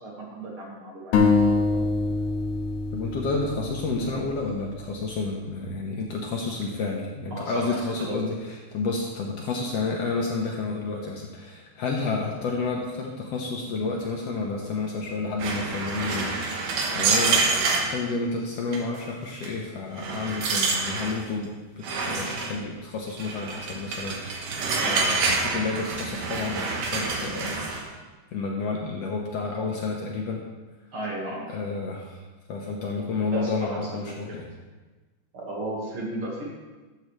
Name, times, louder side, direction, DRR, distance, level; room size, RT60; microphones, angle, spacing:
voice 1, 0.0-1.8 3.5-3.7 7.3-8.2 30.9-31.5 33.3-34.3 35.3-36.5, right 1 dB, 50° right, -3 dB, 2.3 m, -35 dB
sound 1, 1.1-4.8, left 3 dB, 85° left, 2.5 m, -24 dB
voice 2, 2.9-8.4 8.7-27.7 28.3-30.4 31.5-32.2 32.5-34.5, left 3 dB, 65° left, -1 dB, 1.7 m, -30 dB
sound 2, 15.4-17.9 18.7-19.0 19.4-19.5 20.0-21.2 21.8-22.5 23.2-27.8, right 4 dB, 90° right, 2.8 m, -27 dB
13.5 x 7.8 x 3.2 m, 1.2 s
omnidirectional pair, 3.5 m